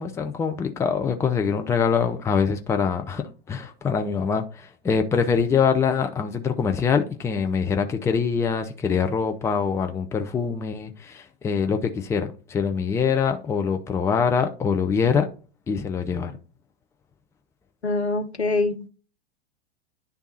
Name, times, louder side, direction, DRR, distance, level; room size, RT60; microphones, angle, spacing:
voice 1, 0.0-15.3 15.7-16.4, left 6 dB, 10° left, 0.5 m, -24 dB
voice 2, 17.8-18.9, left 3 dB, 85° left, 0.9 m, -24 dB
10.0 x 3.5 x 4.0 m
figure-of-eight pair, 95°, 32 cm